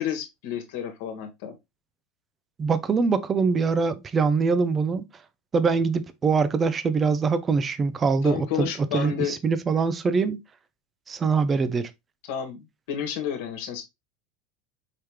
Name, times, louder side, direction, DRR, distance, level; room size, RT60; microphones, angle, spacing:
voice 1, 0.0-1.5 8.2-9.3 12.3-13.8, left 9 dB, 65° left, 1.3 m, -31 dB
voice 2, 2.6-5.0 5.5-8.7 8.9-10.4 11.1-11.9, right 5 dB, 20° right, 0.5 m, -23 dB
4.8 x 3.1 x 3.4 m
supercardioid pair, 155°, 0 cm